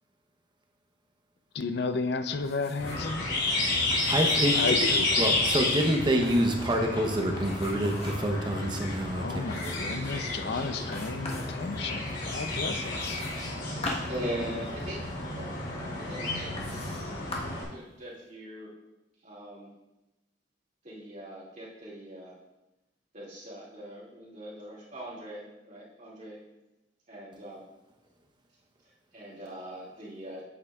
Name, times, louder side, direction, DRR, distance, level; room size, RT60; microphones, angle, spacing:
voice 1, 1.5-3.3 4.5-5.2 9.1-13.2, left 3 dB, 60° left, 9 dB, 0.5 m, -33 dB
sound 1, 2.3-3.1 3.4-3.5 3.9-4.9 5.6-6.6 7.4-8.4 8.8-8.9 9.5-10.0 10.9-11.6 12.9-14.9 15.7-15.8 16.6-17.1 17.3-17.7, left 2 dB, 35° left, 1.3 m, -41 dB
sound 2, 2.8-17.6, left 2 dB, 75° left, 3.0 m, -31 dB
voice 2, 4.1-4.5 5.2-10.2 10.6-10.7, right 1 dB, 25° right, 2 dB, 0.9 m, -27 dB
voice 3, 13.2-17.2 17.7-18.7 19.2-19.7 20.8-22.3 23.1-26.4 27.1-27.6 28.8-30.4, right 1 dB, 40° right, -6 dB, 2.4 m, -42 dB
8.6 x 8.5 x 2.4 m, 0.98 s
head